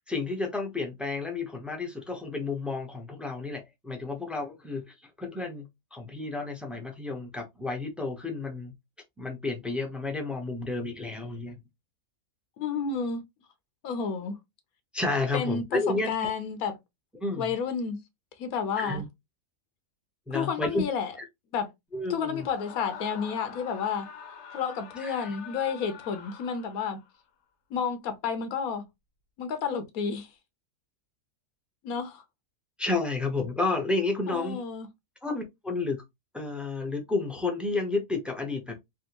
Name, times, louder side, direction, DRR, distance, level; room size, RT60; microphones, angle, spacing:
voice 1, 0.1-8.7 9.2-11.6 14.9-16.3 17.2-17.5 18.8-19.1 20.3-20.8 21.2-21.3 21.9-22.5 25.0-25.3 32.8-34.6 35.2-36.0 36.3-38.7, left 3 dB, ahead, 0.4 m, -31 dB
voice 2, 12.6-13.2 13.8-14.4 15.3-16.7 17.4-18.0 18.4-19.0 20.3-21.1 21.5-21.7 22.1-24.1 24.5-27.0 27.7-28.8 29.4-30.3 31.8-32.2 34.3-34.9, left 6 dB, 90° left, 1.1 m, -31 dB
Screaming, 22.3-27.2, left 7 dB, 65° left, 0.8 m, -45 dB
3.4 x 2.4 x 2.8 m
omnidirectional pair, 1.5 m